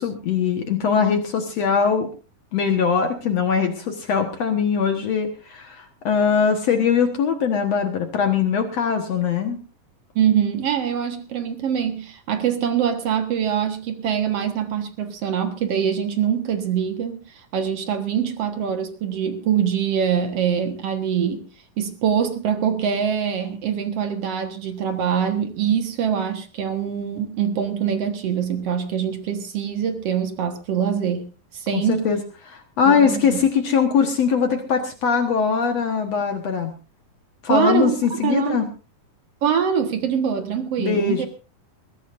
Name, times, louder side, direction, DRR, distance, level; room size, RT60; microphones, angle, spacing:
voice 1, 0.0-2.1 2.5-9.6 31.7-32.2 32.5-36.7 37.4-38.7 40.8-41.3, left 6 dB, 55° left, 2.0 m, -21 dB
voice 2, 10.2-17.2 17.5-21.4 21.8-31.3 31.5-32.1 32.9-33.4 37.5-38.0 38.2-38.6 39.4-41.3, right 8 dB, 55° right, 1.9 m, -24 dB
21.5 x 16.5 x 2.6 m
omnidirectional pair, 4.4 m